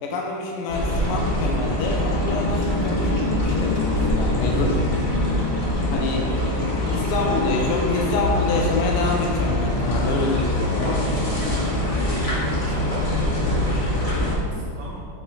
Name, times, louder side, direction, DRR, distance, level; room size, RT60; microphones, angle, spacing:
voice 1, 0.0-4.8 5.9-6.3 6.9-11.1, left 3 dB, 85° left, 0 dB, 1.6 m, -27 dB
sound 1, 0.7-14.3, left 1 dB, 20° left, 1.2 m, -23 dB
voice 2, 6.8-8.0 11.5-12.0 12.3-15.0, right 1 dB, 70° right, -4 dB, 1.4 m, -37 dB
8.4 x 4.3 x 3.7 m, 2.3 s
omnidirectional pair, 2.4 m